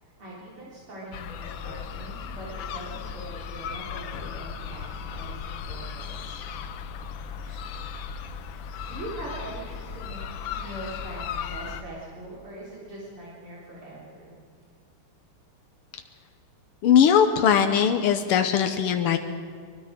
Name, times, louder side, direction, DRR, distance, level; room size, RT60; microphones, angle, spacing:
voice 1, 0.0-6.1 7.4-7.6 8.7-10.2 10.5-14.3, right 1 dB, 75° right, -7 dB, 4.9 m, -42 dB
sound 1, 1.1-11.8, left 7 dB, 70° left, 1.6 m, -36 dB
voice 2, 16.8-19.2, left 8 dB, 85° left, 7 dB, 1.9 m, -20 dB
24.0 x 22.0 x 5.2 m, 2.1 s
omnidirectional pair, 2.4 m